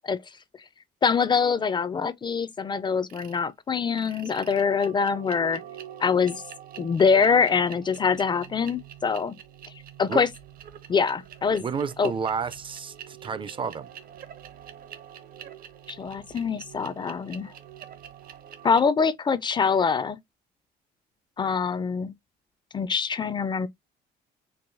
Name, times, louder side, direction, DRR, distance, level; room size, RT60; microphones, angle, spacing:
voice 1, 1.0-5.6 6.0-6.4 6.8-9.3 10.0-10.3 10.9-11.6 12.0-12.1 15.9-17.5 18.6-20.2 21.4-22.1 22.7-23.7, left 5 dB, 25° left, 0.4 m, -24 dB
sound 1, 3.1-3.4 3.9-18.8, right 10 dB, 60° right, 0.8 m, -45 dB
voice 2, 11.6-13.9, right 6 dB, 30° right, 0.4 m, -31 dB
4.6 x 2.7 x 2.6 m
cardioid pair, 110°, 17 cm